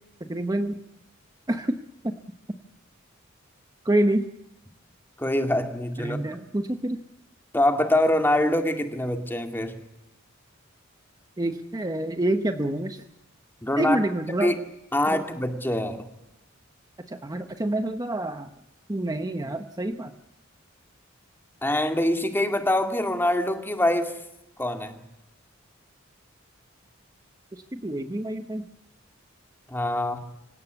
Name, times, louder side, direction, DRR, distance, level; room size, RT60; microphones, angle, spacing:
voice 1, 0.2-0.7 1.5-1.7 2.0-2.1 3.8-4.3 6.0-7.0 11.4-13.0 13.8-14.6 15.1-15.2 17.0-18.5 18.9-20.1 27.5-28.6, right 1 dB, 20° right, 7 dB, 1.0 m, -27 dB
voice 2, 5.2-6.2 7.5-9.8 13.6-14.0 14.4-14.6 14.9-16.1 21.6-24.2 24.6-25.0 29.7-30.2, left 1 dB, 10° left, 5 dB, 2.2 m, -24 dB
26.0 x 17.0 x 8.2 m, 0.87 s
head